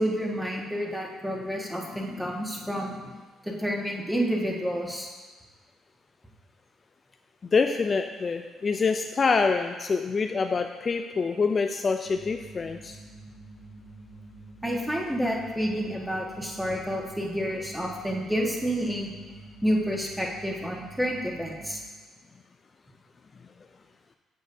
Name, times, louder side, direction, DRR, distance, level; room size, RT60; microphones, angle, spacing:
voice 1, 0.0-3.0 3.4-5.1 14.6-19.1 19.6-21.8, equal, 5° right, -2 dB, 1.5 m, -29 dB
voice 2, 7.5-13.0, left 4 dB, 40° left, 6 dB, 0.3 m, -26 dB
sound 1, 12.0-21.9, right 2 dB, 45° right, 1.2 m, -47 dB
8.1 x 6.3 x 2.7 m, 1.3 s
supercardioid pair, 60°, 0 cm